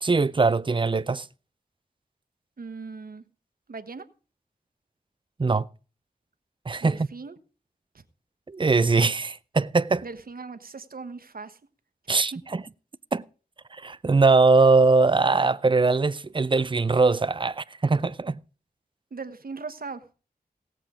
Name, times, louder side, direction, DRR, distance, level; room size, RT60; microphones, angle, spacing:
voice 1, 0.0-1.3 5.4-5.7 6.7-7.0 8.5-10.0 12.1-12.6 13.1-13.2 13.7-18.4, right 3 dB, 30° right, 0.5 m, -21 dB
voice 2, 2.6-3.2 3.7-4.0 6.8-7.4 7.9-8.0 10.0-11.6 12.0-12.4 19.1-20.0, right 4 dB, 65° right, 1.2 m, -39 dB
17.0 x 7.6 x 5.0 m
wide cardioid pair, 80°, 16 cm